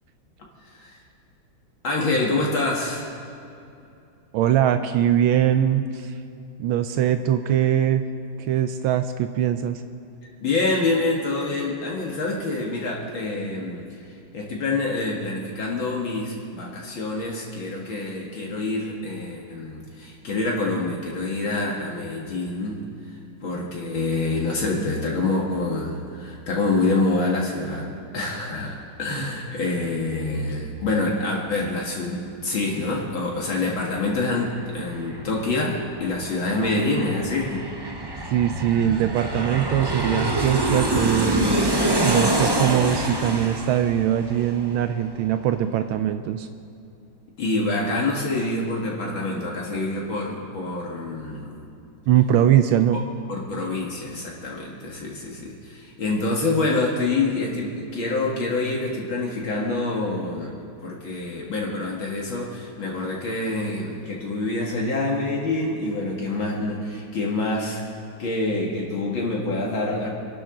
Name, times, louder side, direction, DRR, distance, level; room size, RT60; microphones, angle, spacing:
voice 1, 0.7-1.0 1.8-3.1 10.4-14.0 14.3-22.8 23.4-37.7 47.4-51.7 53.3-60.5 60.8-67.8 68.2-70.1, left 2 dB, 70° left, -2 dB, 2.5 m, -26 dB
voice 2, 4.3-6.1 6.6-8.0 8.4-9.8 38.3-41.6 42.0-46.5 52.1-53.0, right 10 dB, 80° right, 9 dB, 1.4 m, -21 dB
Aircraft, 33.6-33.7 34.0-45.3 45.6-45.7, right 1 dB, 30° right, 0.4 m, -26 dB
26.0 x 12.0 x 3.9 m, 2.6 s
omnidirectional pair, 2.3 m